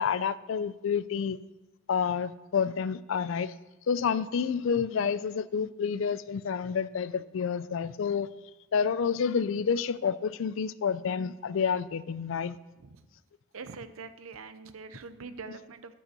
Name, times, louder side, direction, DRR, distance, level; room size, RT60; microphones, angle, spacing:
voice 1, 0.0-1.4 1.9-3.5 3.9-8.3 8.7-12.6, left 6 dB, 65° left, 17 dB, 0.4 m, -29 dB
voice 2, 13.5-15.9, right 4 dB, 75° right, 11 dB, 0.6 m, -44 dB
9.0 x 5.4 x 6.6 m, 1.1 s
head